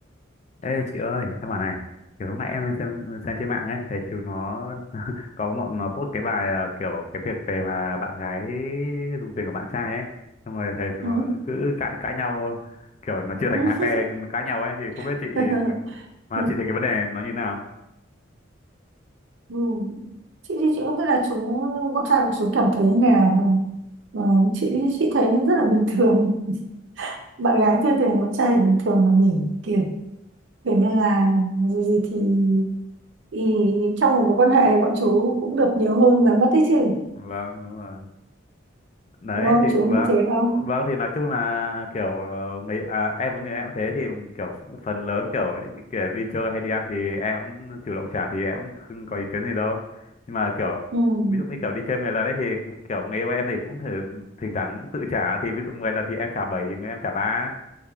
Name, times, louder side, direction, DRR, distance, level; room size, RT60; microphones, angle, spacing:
voice 1, 0.6-1.8 2.2-10.1 10.5-15.7 16.3-17.6 37.2-38.1 39.2-40.1 40.5-50.8 51.3-57.6, left 3 dB, 35° left, 4 dB, 0.3 m, -28 dB
voice 2, 11.0-11.3 13.5-14.0 15.4-16.0 16.4-16.6 19.5-20.1 20.5-23.7 24.1-26.6 27.0-30.0 30.6-32.7 33.3-37.0 39.4-40.7 50.9-51.5, right 2 dB, 70° right, 2 dB, 0.5 m, -20 dB
3.5 x 3.3 x 2.2 m, 0.87 s
head